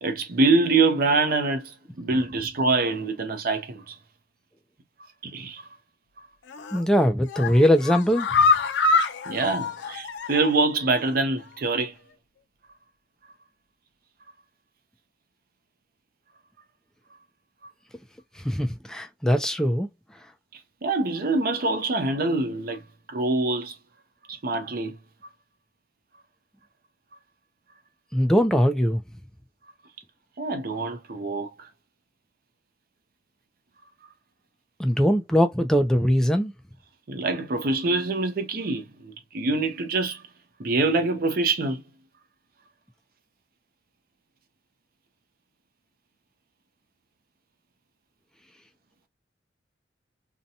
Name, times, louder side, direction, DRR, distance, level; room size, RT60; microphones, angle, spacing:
voice 1, 0.0-3.9 5.2-5.6 9.3-11.9 20.8-22.8 23.1-23.7 24.3-25.0 30.4-31.5 37.1-40.2 40.6-41.8, right 3 dB, 55° right, 0.6 m, -25 dB
sound 1, 6.5-6.9 7.2-10.6 11.0-11.1 11.4-11.5, left 4 dB, 80° left, 0.4 m, -25 dB
voice 2, 6.7-8.3 18.4-19.9 28.1-29.0 34.8-36.5, equal, 5° left, 0.4 m, -21 dB
2.7 x 2.2 x 2.6 m
head